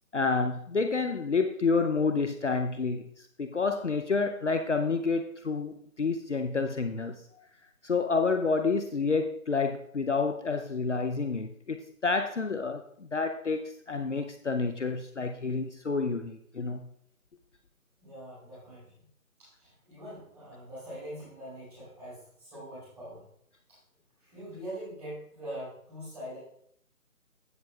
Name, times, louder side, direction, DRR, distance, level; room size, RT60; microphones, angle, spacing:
voice 1, 0.1-3.1 3.4-7.1 7.8-16.8, left 4 dB, 55° left, 7 dB, 0.7 m, -29 dB
voice 2, 18.0-19.1 19.4-23.2 23.7-23.8 24.2-26.4, equal, 5° right, -14 dB, 4.3 m, -43 dB
16.0 x 7.5 x 2.3 m, 0.67 s
figure-of-eight pair, 175°, 43 cm